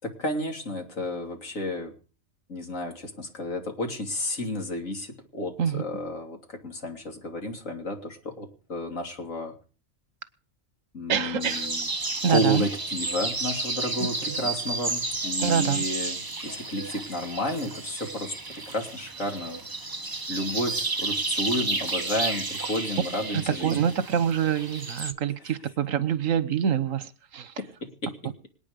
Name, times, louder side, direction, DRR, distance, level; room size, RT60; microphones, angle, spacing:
voice 1, 0.0-1.9 2.5-9.5 10.9-11.9 12.3-16.2 16.4-18.3 18.7-19.6 20.3-23.7 27.6-28.1, left 1 dB, 80° left, 3 dB, 3.4 m, -31 dB
voice 2, 11.1-11.7 12.2-12.6 14.0-14.4 15.4-15.8 23.3-27.5, right 8 dB, 85° right, 15 dB, 1.4 m, -26 dB
sound 1, 11.4-25.1, right 3 dB, 20° right, 0.8 m, -32 dB
26.5 x 9.2 x 5.2 m, 0.38 s
omnidirectional pair, 1.3 m